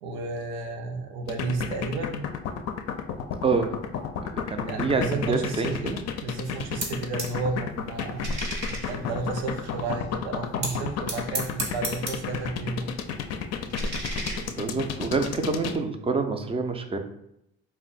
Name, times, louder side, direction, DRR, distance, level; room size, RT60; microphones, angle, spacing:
voice 1, 0.0-2.3 4.7-6.0 6.2-8.3 8.7-12.9, right 3 dB, 90° right, 3 dB, 0.5 m, -32 dB
sound 1, 1.3-15.8, left 8 dB, 50° left, 0.4 m, -31 dB
voice 2, 3.4-3.8 4.2-6.0 14.5-17.0, right 4 dB, 20° right, 6 dB, 0.4 m, -27 dB
sound 2, 6.4-7.4 7.7-9.9 10.6-12.5 12.8-15.0, right 1 dB, 55° right, 1.1 m, -35 dB
2.6 x 2.2 x 3.9 m, 0.77 s
hypercardioid pair, 60°, 32 cm